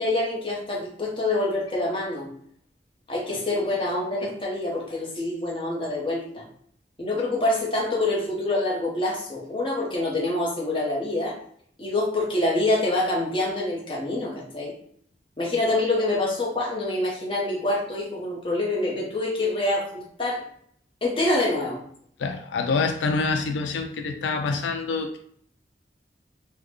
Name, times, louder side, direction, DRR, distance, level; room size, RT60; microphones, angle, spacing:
voice 1, 0.0-2.3 3.1-6.4 7.0-11.4 11.8-14.7 15.4-20.4 21.0-21.8, left 2 dB, 30° left, -3 dB, 0.8 m, -26 dB
voice 2, 22.2-25.2, left 4 dB, 85° left, 5 dB, 0.3 m, -26 dB
3.7 x 2.1 x 3.1 m, 0.64 s
head